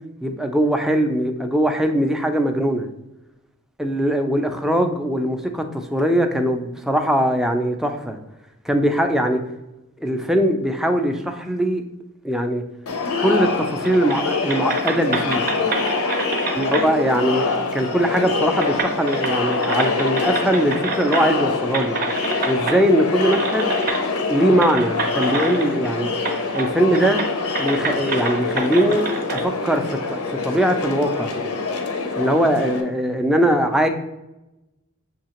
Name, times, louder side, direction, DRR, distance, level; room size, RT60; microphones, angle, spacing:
voice 1, 0.2-2.9 3.8-8.2 8.7-9.4 10.0-11.8 12.2-12.6 13.2-15.4 16.6-22.0 22.5-23.8 24.3-26.1 26.5-27.3 27.6-29.1 29.3-31.4 32.2-33.9, equal, ahead, 5 dB, 0.3 m, -21 dB
Crowd, 12.9-32.8, left 3 dB, 75° left, 0.6 m, -25 dB
sound 1, 13.8-14.2 14.5-16.9 18.0-18.1 18.5-21.4 21.7-22.8 23.3-24.0 24.6-25.9 26.2-26.7 26.9-29.4, right 4 dB, 45° right, 0.6 m, -28 dB
6.5 x 2.7 x 2.9 m, 0.96 s
head